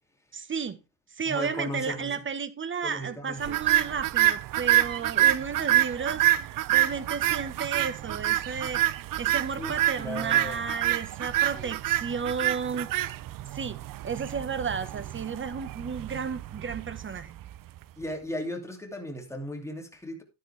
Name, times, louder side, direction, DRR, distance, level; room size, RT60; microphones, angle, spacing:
voice 1, 0.3-0.8 1.1-8.8 9.2-12.9 13.5-17.3, right 6 dB, 25° right, 1.4 m, -33 dB
voice 2, 1.3-2.1 2.8-3.6 9.6-10.6 11.5-11.7 18.0-20.2, equal, 5° left, 2.7 m, -36 dB
sound 1, 3.4-17.8, right 13 dB, 45° right, 0.6 m, -27 dB
12.0 x 10.0 x 3.4 m
cardioid pair, 125°, 47 cm